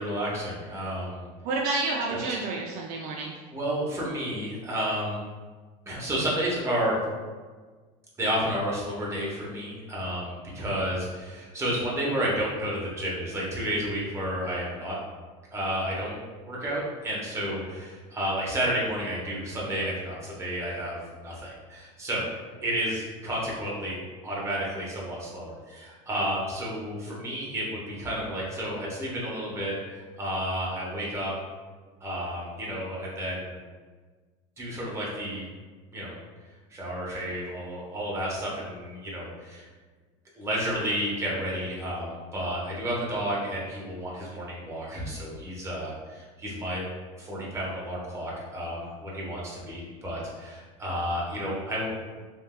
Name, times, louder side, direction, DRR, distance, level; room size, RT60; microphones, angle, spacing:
voice 1, 0.0-1.3 3.5-5.2 5.9-7.0 8.2-15.0 15.5-16.1 16.4-24.0 24.2-31.3 32.0-33.6 34.6-35.5 35.9-36.1 36.7-39.7 40.4-46.8 47.2-51.9, equal, 15° right, -5 dB, 1.0 m, -31 dB
voice 2, 1.4-3.5, right 3 dB, 60° right, -1 dB, 0.4 m, -30 dB
3.5 x 2.6 x 2.3 m, 1.4 s
supercardioid pair, 115°, 16 cm